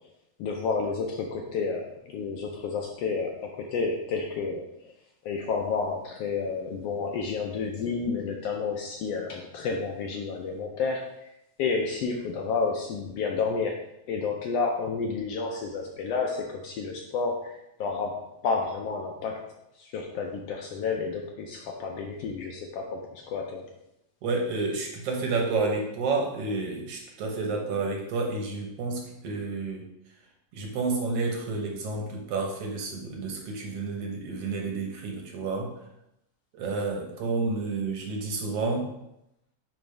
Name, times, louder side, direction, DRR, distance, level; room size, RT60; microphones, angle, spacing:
voice 1, 0.4-4.9 5.2-11.3 11.6-19.4 19.8-23.6, left 4 dB, 80° left, 1 dB, 1.4 m, -30 dB
voice 2, 24.2-29.9 30.5-35.7 36.5-38.9, right 3 dB, 60° right, 1 dB, 1.8 m, -30 dB
10.5 x 3.5 x 3.3 m, 0.84 s
omnidirectional pair, 3.4 m